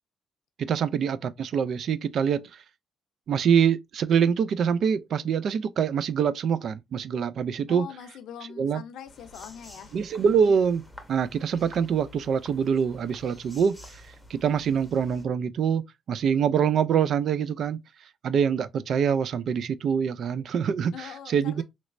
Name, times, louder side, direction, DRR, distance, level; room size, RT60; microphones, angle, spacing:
voice 1, 0.6-2.5 3.3-7.9 8.6-8.8 9.9-10.8 11.1-14.0 14.3-17.8 18.2-21.6, right 7 dB, 65° right, 0.3 m, -25 dB
voice 2, 7.7-10.0 20.9-21.6, left 9 dB, 80° left, 0.5 m, -42 dB
sound 1, 9.1-15.3, left 1 dB, ahead, 1.0 m, -49 dB
3.2 x 3.1 x 2.4 m
cardioid pair, 90°, 0 cm